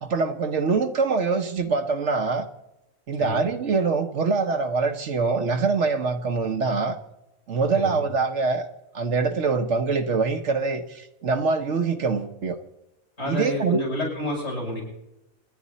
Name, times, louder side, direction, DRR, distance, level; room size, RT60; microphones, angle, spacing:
voice 1, 0.0-2.5 3.1-7.0 7.5-8.7 8.9-12.6 13.3-13.8, right 4 dB, 60° right, 1.3 m, -24 dB
voice 2, 7.7-8.1 13.2-14.8, left 1 dB, 65° left, 8.0 m, -30 dB
28.0 x 10.5 x 4.2 m
omnidirectional pair, 1.4 m